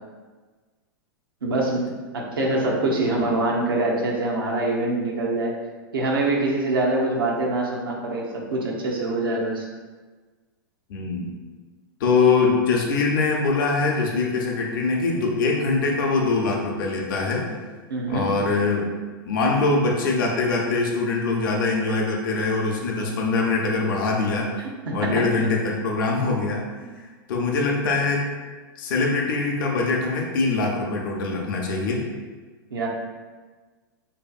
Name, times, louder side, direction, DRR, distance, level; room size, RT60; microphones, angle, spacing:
voice 1, 1.4-5.6 5.9-9.7 17.9-18.3 24.6-25.5 32.7-32.9, right 2 dB, 85° right, -1 dB, 0.6 m, -24 dB
voice 2, 10.9-11.3 12.0-17.6 18.1-18.9 19.2-24.5 24.9-26.6 27.3-28.2 28.8-32.0, left 3 dB, 65° left, -1 dB, 0.5 m, -23 dB
2.7 x 2.5 x 2.3 m, 1.4 s
hypercardioid pair, 110°, 12 cm